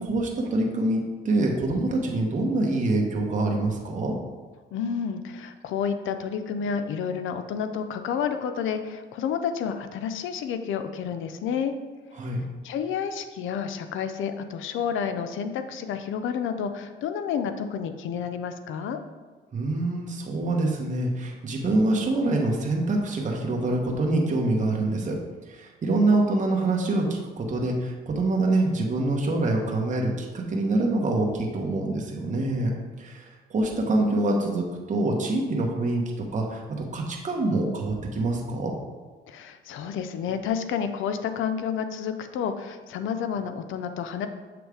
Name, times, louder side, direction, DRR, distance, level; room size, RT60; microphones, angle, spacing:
voice 1, 0.0-4.1 12.2-12.4 19.5-25.2 25.5-32.7 33.0-38.7, right 2 dB, 40° right, 0 dB, 1.0 m, -25 dB
voice 2, 4.7-11.8 12.6-19.0 39.3-44.3, left 7 dB, 80° left, 9 dB, 0.5 m, -30 dB
6.9 x 3.1 x 4.8 m, 1.3 s
cardioid pair, 90°, 20 cm